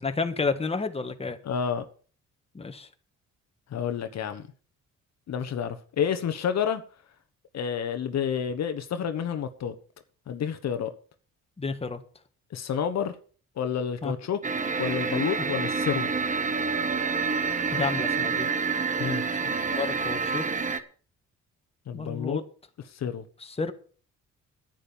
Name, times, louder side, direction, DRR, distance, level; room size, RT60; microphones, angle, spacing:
voice 1, 0.0-1.4 2.5-2.9 11.6-12.0 14.0-14.1 17.7-18.5 19.3-19.4 19.8-20.5 21.9-22.4 23.4-23.7, left 4 dB, 20° left, 1.6 m, -30 dB
voice 2, 1.4-1.8 3.7-4.5 5.3-6.8 7.5-9.7 10.3-10.9 12.5-13.1 13.6-14.4 14.8-16.1 19.0-19.2 21.9-22.4 22.9-23.2, left 8 dB, 60° left, 1.3 m, -29 dB
sound 1, 14.4-20.8, right 5 dB, 25° right, 1.4 m, -28 dB
10.0 x 9.1 x 7.2 m
cardioid pair, 90°, 30 cm